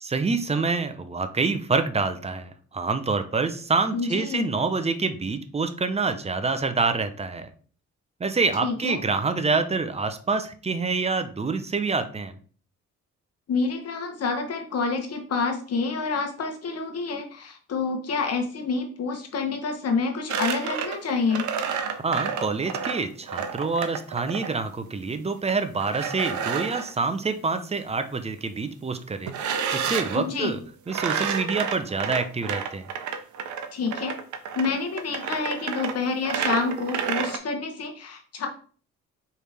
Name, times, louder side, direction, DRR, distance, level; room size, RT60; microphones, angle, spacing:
voice 1, 0.0-7.5 8.2-12.3 22.0-29.3 29.7-30.6 30.9-32.9, right 4 dB, 20° right, 9 dB, 0.6 m, -26 dB
voice 2, 3.9-4.5 8.6-9.0 13.5-21.5 30.1-30.5 33.7-34.2 34.5-38.5, left 4 dB, 55° left, 4 dB, 1.2 m, -28 dB
sound 1, 20.3-24.6 25.8-26.9 29.3-30.2 30.9-37.4, right 7 dB, 75° right, 0.7 m, -30 dB
4.6 x 3.3 x 3.4 m, 0.42 s
cardioid pair, 90°, 30 cm